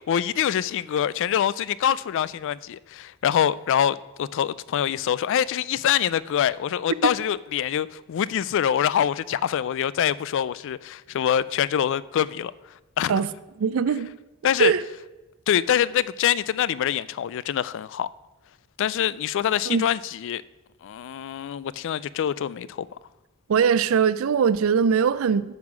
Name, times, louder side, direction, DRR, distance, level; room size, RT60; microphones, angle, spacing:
voice 1, 0.1-12.5 13.0-13.2 14.4-14.7 15.5-18.1 18.8-20.4 20.8-22.9, left 9 dB, 60° left, 0.3 m, -25 dB
voice 2, 13.6-14.1 14.6-14.8 19.7-19.8 23.5-25.5, right 6 dB, 70° right, 0.4 m, -21 dB
9.5 x 5.6 x 6.0 m
head